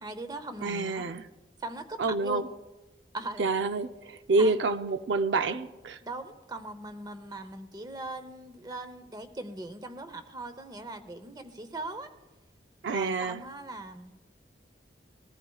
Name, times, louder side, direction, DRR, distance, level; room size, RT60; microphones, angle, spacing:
voice 1, 0.0-1.1 1.6-2.5 3.1-3.5 4.4-4.7 6.0-12.1 12.9-14.1, right 2 dB, 20° right, 0.9 m, -40 dB
voice 2, 0.6-1.2 2.0-2.5 3.4-6.0 12.8-13.4, right 3 dB, 80° right, 0.5 m, -28 dB
21.5 x 14.0 x 2.4 m
head